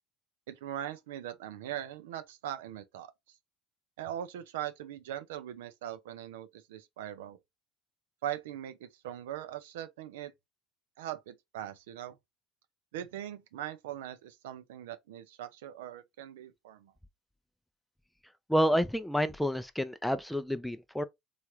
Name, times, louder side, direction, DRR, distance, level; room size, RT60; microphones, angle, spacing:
voice 1, 0.5-3.1 4.0-7.4 8.2-10.3 11.0-12.2 12.9-16.9, right 11 dB, 80° right, 0.4 m, -40 dB
voice 2, 18.5-21.0, equal, 5° left, 0.4 m, -29 dB
3.2 x 2.4 x 3.0 m
hypercardioid pair, 75°, 0 cm